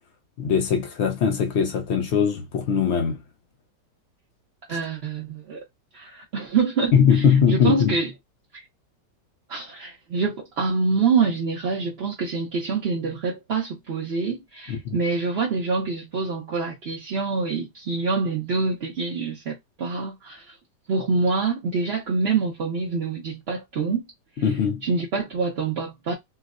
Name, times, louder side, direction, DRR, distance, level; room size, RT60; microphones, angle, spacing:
voice 1, 0.4-3.2 6.9-7.9 14.7-14.9 24.4-24.8, left 7 dB, 65° left, 0.7 m, -21 dB
voice 2, 4.7-5.6 5.9-8.1 9.5-20.5 20.9-24.0 24.8-26.1, right 4 dB, 55° right, 0.7 m, -26 dB
4.4 x 2.0 x 2.4 m
omnidirectional pair, 1.9 m